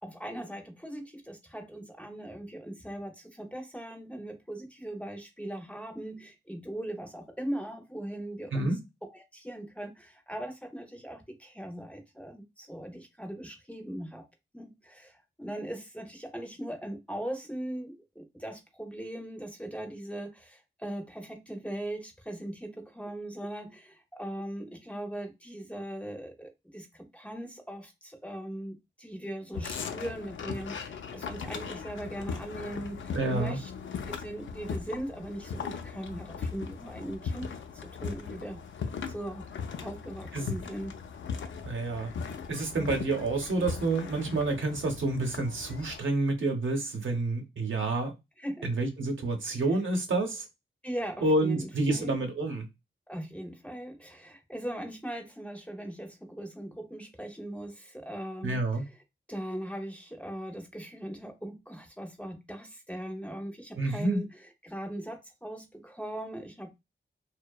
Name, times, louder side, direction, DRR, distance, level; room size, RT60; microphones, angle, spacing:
voice 1, 0.0-8.8 9.1-14.2 14.5-33.7 34.1-38.6 39.1-39.5 39.8-40.9 48.4-48.7 50.8-52.1 53.1-58.9 59.3-66.8, right 1 dB, 5° left, 0.5 m, -40 dB
sound 1, 29.5-46.0, left 5 dB, 75° left, 0.4 m, -39 dB
voice 2, 33.1-33.6 40.3-40.5 41.6-42.1 42.5-48.1 48.6-50.5 51.2-52.7 58.4-58.8 63.8-64.2, right 2 dB, 75° right, 0.8 m, -28 dB
2.6 x 2.1 x 2.2 m
wide cardioid pair, 85°, 20 cm